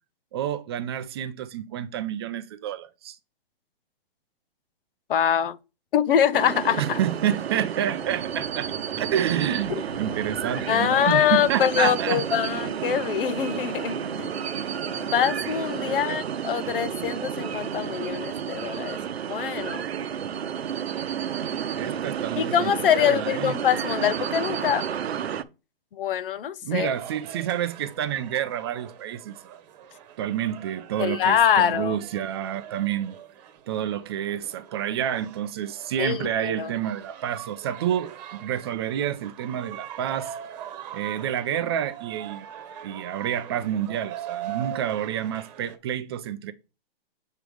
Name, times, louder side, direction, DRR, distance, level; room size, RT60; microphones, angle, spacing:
voice 1, 0.3-3.2 6.8-8.7 9.0-12.2 15.9-16.2 21.7-23.5 26.6-29.6 30.2-33.1 33.7-38.1 38.4-40.3 40.9-42.5 42.8-46.5, right 10 dB, 25° right, 0.4 m, -29 dB
voice 2, 5.1-5.6 5.9-7.0 10.7-14.3 15.1-19.0 19.3-19.8 22.4-24.9 25.9-26.9 31.0-32.0 36.0-36.7, left 9 dB, 60° left, 0.8 m, -24 dB
sound 1, 6.3-25.4, right 8 dB, 80° right, 0.8 m, -31 dB
sound 2, 7.7-12.6 13.2-15.4, left 3 dB, 75° left, 3.5 m, -46 dB
sound 3, 26.9-45.8, right 11 dB, 40° right, 1.2 m, -42 dB
7.5 x 3.4 x 4.7 m
hypercardioid pair, 145°, 31 cm